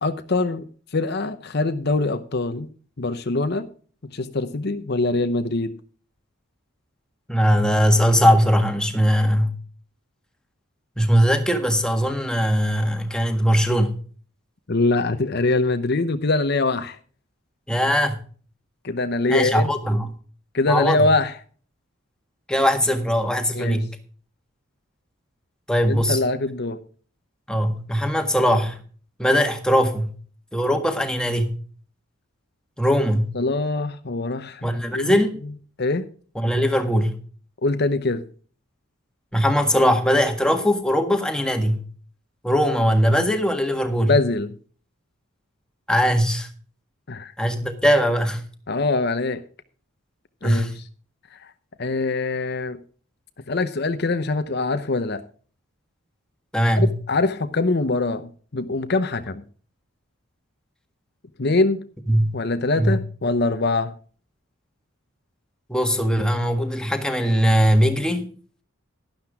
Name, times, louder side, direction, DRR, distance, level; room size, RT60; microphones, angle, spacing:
voice 1, 0.0-0.6 0.9-2.7 3.0-3.7 4.1-5.7 14.7-17.0 18.8-19.7 20.5-21.4 23.5-23.8 25.9-26.8 33.3-35.1 35.8-36.1 37.6-38.2 44.0-44.5 47.1-47.3 48.7-49.4 50.4-50.7 51.3-51.4 51.8-52.8 53.5-55.2 56.8-59.4 61.4-61.8 62.3-63.9, left 3 dB, 50° left, 10 dB, 0.8 m, -23 dB
voice 2, 7.3-9.5 11.0-13.9 17.7-18.2 19.3-20.1 20.7-21.0 22.5-23.9 25.7-26.2 27.5-28.8 29.2-30.1 30.5-31.6 32.8-33.3 34.6-35.3 36.3-37.2 39.3-41.8 42.4-44.2 45.9-46.5 47.4-48.4 50.4-50.8 56.5-57.0 62.1-62.4 62.7-63.0 65.7-68.3, equal, 5° left, 5 dB, 1.6 m, -20 dB
12.0 x 11.5 x 3.6 m, 0.42 s
head